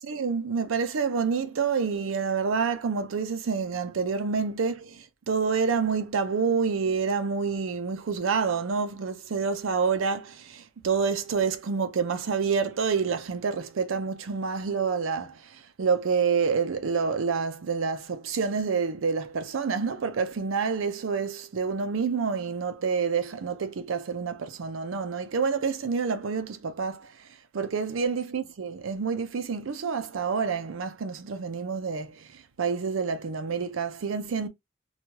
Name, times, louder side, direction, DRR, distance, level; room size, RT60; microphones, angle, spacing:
voice 1, 0.0-27.1 27.5-34.5, right 5 dB, 85° right, 0.5 m, -28 dB
3.0 x 2.3 x 2.8 m
head